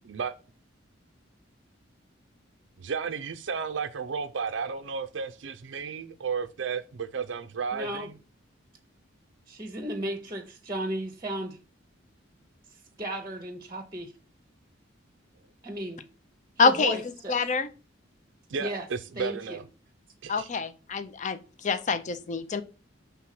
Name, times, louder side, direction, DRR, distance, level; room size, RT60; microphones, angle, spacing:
voice 1, 2.8-8.1 18.5-19.6 20.2-20.5, right 6 dB, 65° right, 0.4 m, -33 dB
voice 2, 7.7-8.1 9.5-11.6 13.0-14.1 15.6-16.0 16.6-17.4 18.5-18.9 19.2-19.6, right 1 dB, 20° right, 0.8 m, -34 dB
voice 3, 16.6-17.0 17.3-17.7 20.3-22.6, left 4 dB, 40° left, 0.5 m, -26 dB
6.2 x 3.4 x 5.8 m
head